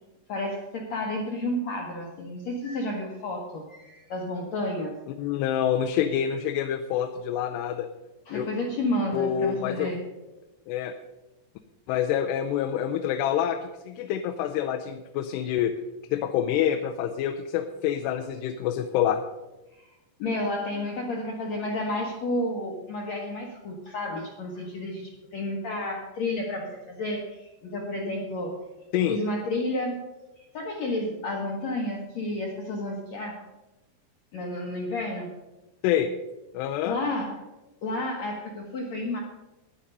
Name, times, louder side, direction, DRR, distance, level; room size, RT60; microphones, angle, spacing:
voice 1, 0.3-5.0 8.3-10.0 19.8-19.9 20.2-28.6 28.9-30.0 30.4-33.4 34.3-35.4 36.8-37.4 37.8-39.2, left 1 dB, 65° left, -1 dB, 1.8 m, -31 dB
voice 2, 5.2-7.9 8.3-8.5 9.1-9.9 10.7-10.9 11.9-15.7 16.1-19.2 28.9-29.2 35.8-36.1 36.5-37.0, left 9 dB, 85° left, 5 dB, 2.8 m, -27 dB
11.5 x 10.0 x 5.3 m, 1.0 s
omnidirectional pair, 4.8 m